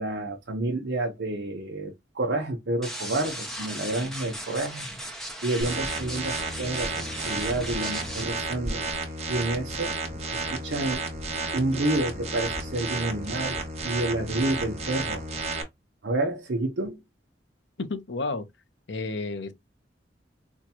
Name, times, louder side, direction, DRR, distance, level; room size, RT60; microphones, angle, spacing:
voice 1, 0.0-9.9 10.3-11.0 11.5-13.6 13.8-15.3 16.0-17.0, right 2 dB, 75° right, 0.8 m, -29 dB
sound 1, 2.8-8.2, equal, 5° left, 0.7 m, -37 dB
sound 2, 5.6-15.6, right 3 dB, 35° right, 1.0 m, -32 dB
voice 2, 17.8-18.5 18.9-19.5, left 3 dB, 75° left, 0.7 m, -31 dB
4.4 x 2.2 x 2.9 m
head